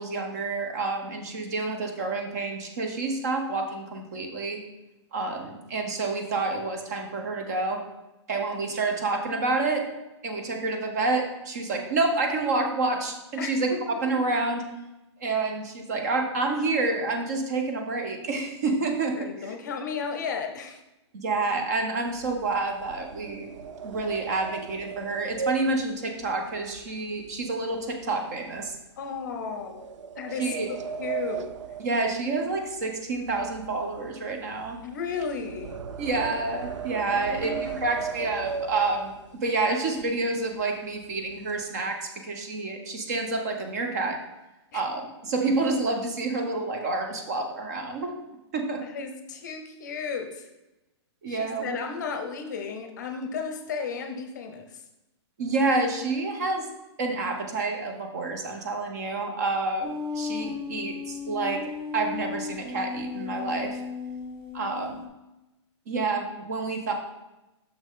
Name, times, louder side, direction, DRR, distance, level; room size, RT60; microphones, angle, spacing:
voice 1, 0.0-4.6 5.1-7.8 8.3-9.8 10.2-13.7 14.0-14.6 15.2-19.2 21.1-23.5 23.8-28.7 30.4-30.7 31.8-34.8 36.0-39.1 39.4-44.2 44.7-48.1 48.5-48.8 51.2-51.8 55.4-56.7 57.0-63.8 64.5-65.0 65.9-66.9, right 3 dB, 35° right, 4 dB, 0.8 m, -28 dB
voice 2, 13.4-14.0 19.2-20.8 29.0-29.8 30.2-30.5 31.0-31.5 34.8-35.8 37.1-38.0 44.7-44.8 48.8-50.5 51.3-54.8, left 5 dB, 40° left, 6 dB, 0.7 m, -34 dB
sound 1, 22.1-27.4 27.7-28.1 28.6-28.7 29.5-32.8 33.1-39.4 40.0-40.1 40.4-40.6 41.0-41.6, right 7 dB, 80° right, 0.5 m, -37 dB
sound 2, 59.8-65.1, left 5 dB, 10° right, 0.5 m, -35 dB
6.4 x 5.9 x 3.7 m, 0.97 s
hypercardioid pair, 180°, 15 cm